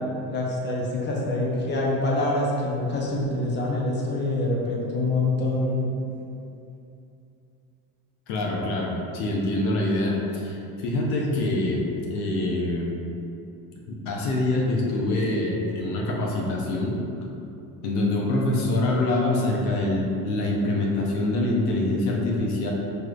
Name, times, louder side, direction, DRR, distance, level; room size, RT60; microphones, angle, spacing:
voice 1, 0.3-5.9 11.3-11.5, left 2 dB, 25° left, -3 dB, 0.8 m, -25 dB
voice 2, 8.3-11.8 12.1-12.9 13.9-17.0 17.8-22.7, left 2 dB, 80° left, -2 dB, 0.8 m, -25 dB
4.7 x 3.2 x 2.4 m, 2.7 s
supercardioid pair, 90°, 42 cm